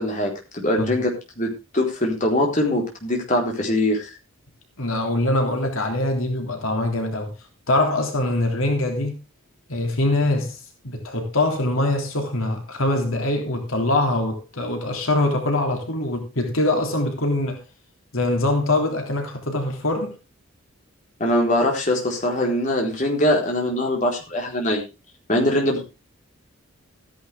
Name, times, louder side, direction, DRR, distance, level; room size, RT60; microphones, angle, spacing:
voice 1, 0.0-4.0 21.2-24.8 25.3-25.8, left 1 dB, 35° left, 4.2 m, -22 dB
voice 2, 4.8-7.3 7.7-9.2 9.7-10.6 10.8-17.6 18.1-20.1, left 2 dB, 75° left, 3.2 m, -23 dB
15.0 x 11.0 x 3.5 m
head